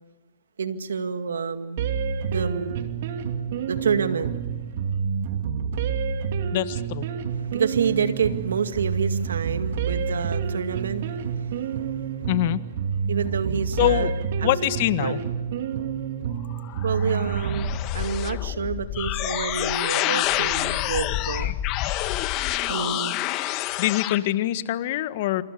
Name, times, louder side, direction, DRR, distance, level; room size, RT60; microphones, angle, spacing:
voice 1, 0.6-1.9 2.2-2.9 3.7-4.6 7.4-11.8 13.1-14.1 14.4-14.7 15.0-15.1 16.8-17.7 17.9-21.6 22.7-23.1, right 6 dB, 85° right, 9 dB, 2.1 m, -28 dB
sound 1, 1.8-17.8, right 6 dB, 60° right, 2.6 m, -28 dB
voice 2, 6.5-7.1 12.3-12.6 13.8-14.1 14.4-15.2 23.8-25.4, left 15 dB, 55° left, 13 dB, 1.5 m, -24 dB
sound 2, 16.5-24.2, left 15 dB, 40° left, 1.6 m, -27 dB
28.0 x 27.0 x 6.8 m, 1.1 s
hypercardioid pair, 125°, 0 cm